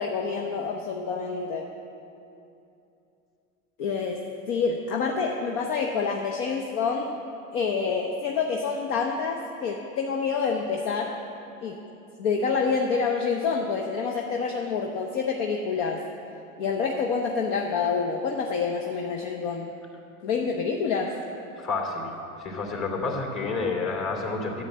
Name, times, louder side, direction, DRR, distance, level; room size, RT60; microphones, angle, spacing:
voice 1, 0.0-1.7 3.8-4.2 4.5-7.1 7.5-11.2 11.6-11.8 12.2-16.0 16.6-19.7 20.2-21.1, left 5 dB, 60° left, 2 dB, 1.1 m, -27 dB
voice 2, 21.6-22.1 22.4-24.6, left 3 dB, 40° left, 1 dB, 2.8 m, -29 dB
10.5 x 8.2 x 7.5 m, 2.8 s
hypercardioid pair, 85°, 42 cm